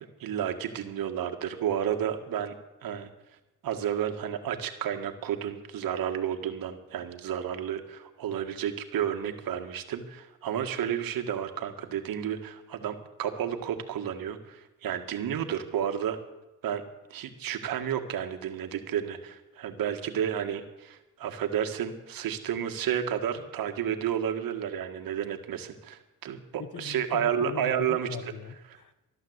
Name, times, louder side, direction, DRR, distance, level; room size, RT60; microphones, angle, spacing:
voice 1, 0.2-2.5 2.8-3.1 3.6-16.2 16.6-16.8 17.1-28.1, right 9 dB, 75° right, 6 dB, 1.9 m, -31 dB
voice 2, 26.6-29.1, left 7 dB, 60° left, 12 dB, 1.5 m, -41 dB
15.0 x 11.5 x 8.1 m, 1.0 s
cardioid pair, 75°, 35 cm